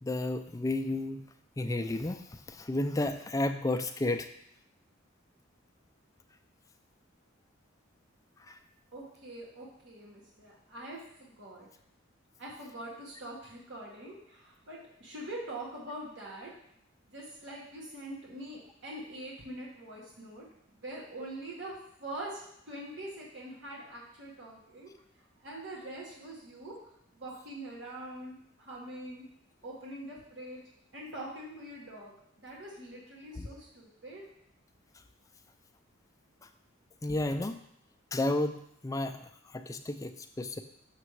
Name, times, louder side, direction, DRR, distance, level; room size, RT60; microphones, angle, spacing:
voice 1, 0.0-1.2 1.6-4.3 8.5-8.6 33.3-33.5 37.0-37.6 38.1-38.6 38.8-40.6, left 2 dB, 15° left, 7 dB, 0.3 m, -32 dB
voice 2, 8.9-11.7 12.4-16.5 17.1-20.4 20.7-22.4 22.7-24.9 25.4-26.7 27.1-29.2 29.6-30.6 30.9-32.1 32.4-34.2, right 1 dB, 60° right, -5 dB, 1.6 m, -44 dB
6.6 x 6.1 x 3.2 m, 0.72 s
head